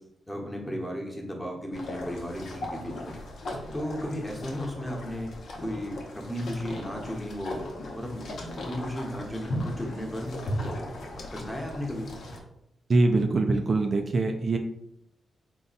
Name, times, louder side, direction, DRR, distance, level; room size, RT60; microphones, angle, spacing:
voice 1, 0.3-3.2 3.7-5.3 5.6-7.6 7.9-8.3 8.6-10.4 11.3-12.1, equal, 10° left, 0 dB, 1.0 m, -34 dB
sound 1, 1.7-12.4, left 1 dB, 75° left, 0.8 m, -37 dB
voice 2, 12.9-14.6, right 3 dB, 45° right, 4 dB, 0.3 m, -23 dB
4.0 x 2.2 x 4.0 m, 0.82 s
cardioid pair, 80°, 0 cm